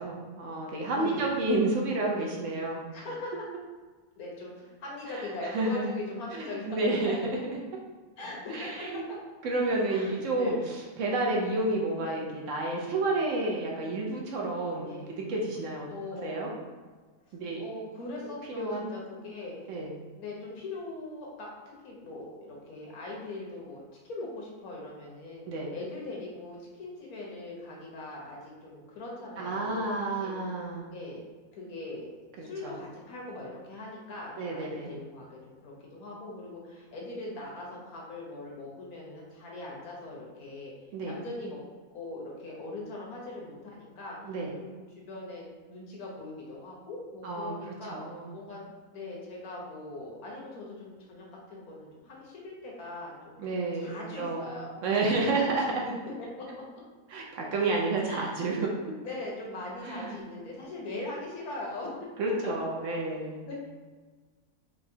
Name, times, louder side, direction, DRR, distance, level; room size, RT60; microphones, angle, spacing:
voice 1, 0.0-2.8 5.5-5.9 6.3-7.6 8.5-9.0 9.4-15.9 16.2-16.5 17.3-17.6 18.5-18.9 19.7-19.9 25.5-25.7 29.4-30.9 32.4-32.7 34.4-34.9 40.9-41.2 44.2-44.5 47.2-47.5 47.9-48.3 53.4-54.5 54.8-55.8 57.1-58.7 59.8-60.2 62.2-63.7, right 2 dB, 65° right, -1 dB, 0.9 m, -30 dB
voice 2, 0.9-2.3 2.9-3.4 4.1-7.0 8.2-9.2 9.9-10.6 11.2-11.5 12.0-12.2 14.8-15.1 15.9-16.6 17.3-19.5 20.2-30.3 30.9-31.2 31.5-32.1 32.3-40.7 41.0-41.6 41.9-44.2 44.6-48.0 48.3-48.6 48.9-53.4 53.7-54.7 55.0-55.9 56.2-56.5 58.0-58.4 59.0-62.4 63.5-63.7, left 2 dB, 80° left, -3 dB, 1.4 m, -41 dB
4.7 x 2.3 x 2.6 m, 1.4 s
omnidirectional pair, 1.5 m